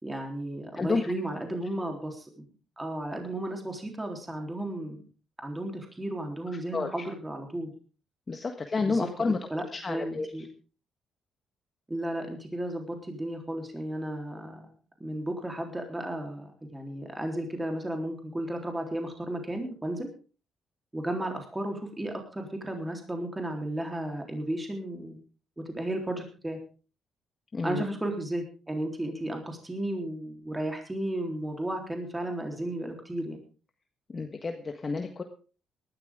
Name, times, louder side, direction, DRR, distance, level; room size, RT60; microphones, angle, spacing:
voice 1, 0.0-2.4 2.8-5.0 5.4-7.7 8.9-9.1 9.5-10.4 11.9-14.7 15.0-20.1 20.9-25.2 25.7-26.6 27.6-33.4, right 1 dB, 15° right, 3 dB, 3.7 m, -34 dB
voice 2, 0.7-1.1 6.5-6.9 8.3-9.4 9.7-10.3 27.5-27.8 34.1-35.2, left 4 dB, 35° left, 5 dB, 1.5 m, -30 dB
18.5 x 13.0 x 3.7 m, 0.36 s
cardioid pair, 90°, 0 cm